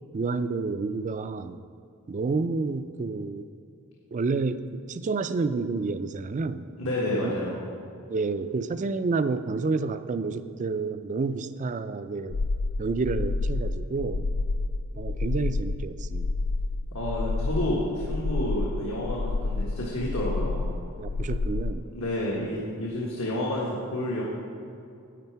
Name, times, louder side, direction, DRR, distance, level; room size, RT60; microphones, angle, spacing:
voice 1, 0.1-1.6 2.1-3.5 4.1-6.7 7.1-7.3 8.1-12.4 12.8-14.3 14.9-16.3 21.0-21.9, right 4 dB, 35° right, 12 dB, 0.3 m, -29 dB
voice 2, 6.8-7.6 16.9-20.6 21.9-24.2, left 1 dB, 80° left, -5 dB, 1.4 m, -30 dB
sound 1, 12.3-21.7, left 3 dB, 50° left, 0.3 m, -29 dB
11.0 x 8.1 x 4.6 m, 2.5 s
head